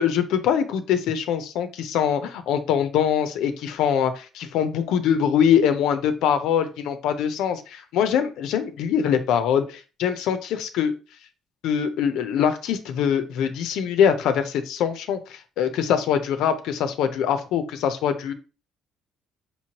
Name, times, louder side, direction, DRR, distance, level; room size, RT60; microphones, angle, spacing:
voice 1, 0.0-10.9 11.6-18.3, left 8 dB, 80° left, 9 dB, 0.6 m, -23 dB
5.4 x 3.0 x 2.9 m, 0.33 s
cardioid pair, 120°, 0 cm